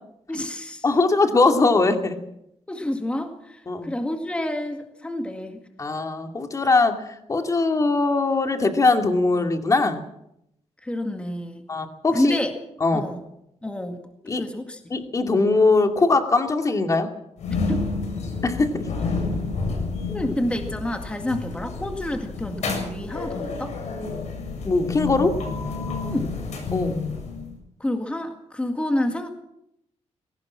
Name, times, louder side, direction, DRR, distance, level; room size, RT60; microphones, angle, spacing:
voice 1, 0.3-0.9 2.7-5.6 10.8-11.7 12.1-12.5 12.9-13.2 13.6-14.9 17.5-17.8 20.1-23.7 26.0-26.4 27.8-29.3, left 1 dB, 10° left, 5 dB, 2.0 m, -28 dB
voice 2, 0.8-2.2 3.7-3.9 5.8-7.0 7.3-10.0 11.7-12.4 12.8-13.1 14.3-14.4 14.9-17.1 18.4-18.9 24.6-25.3 26.7-27.0, left 3 dB, 30° left, 5 dB, 2.4 m, -21 dB
sound 1, 17.4-27.6, left 4 dB, 85° left, 7.4 m, -30 dB
20.5 x 18.0 x 7.4 m, 0.79 s
wide cardioid pair, 150°, 11 cm